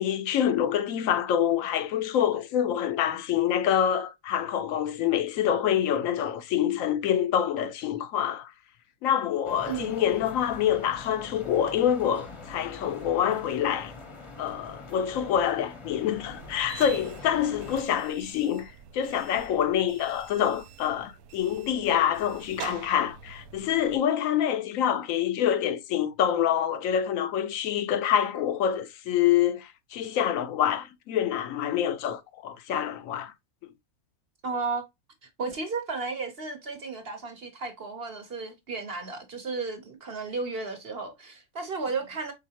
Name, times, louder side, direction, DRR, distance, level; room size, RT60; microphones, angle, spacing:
voice 1, 0.0-8.5 9.0-13.9 14.4-33.3, left 9 dB, 70° left, 0.9 m, -26 dB
sound 1, 9.4-17.8, left 3 dB, 25° left, 0.8 m, -44 dB
voice 2, 9.7-10.0 34.4-34.8 35.4-42.3, right 4 dB, 45° right, 1.0 m, -33 dB
sound 2, 16.3-24.0, right 8 dB, 75° right, 1.1 m, -45 dB
4.8 x 3.6 x 2.8 m
omnidirectional pair, 1.6 m